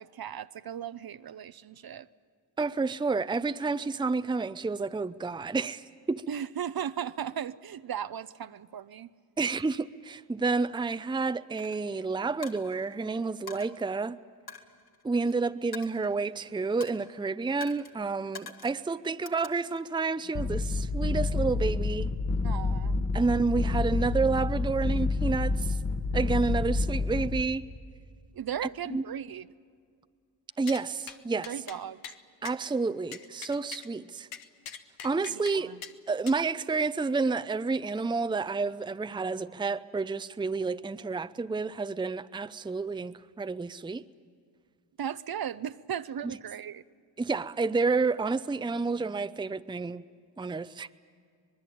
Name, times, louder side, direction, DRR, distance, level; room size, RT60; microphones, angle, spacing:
voice 1, 0.0-2.1 6.3-9.1 22.4-23.1 28.3-29.5 31.5-32.0 35.3-35.8 45.0-46.8, right 9 dB, 50° right, 0.8 m, -36 dB
voice 2, 2.6-6.2 9.4-14.2 15.0-22.1 23.1-25.8 26.1-27.6 28.9-29.0 30.6-31.5 32.4-34.3 35.0-35.7 36.1-44.0 47.2-50.0 50.4-50.9, right 4 dB, 10° right, 0.6 m, -30 dB
Coin (dropping), 11.6-11.8 12.4-13.0 13.5-13.7 14.5-15.3 15.7-16.4 16.8-17.1 17.6-17.9 18.3-18.8 19.3-19.9, left 5 dB, 50° left, 2.2 m, -45 dB
sound 1, 20.3-27.4, left 3 dB, 35° left, 1.4 m, -28 dB
sound 2, 30.7-30.8 31.1-31.2 31.4-31.8 32.0-32.2 32.5-32.6 33.1-33.9 34.3-35.6 35.8-35.9 36.3-36.4, left 8 dB, 85° left, 1.2 m, -42 dB
25.0 x 20.5 x 8.7 m
supercardioid pair, 55°, 46 cm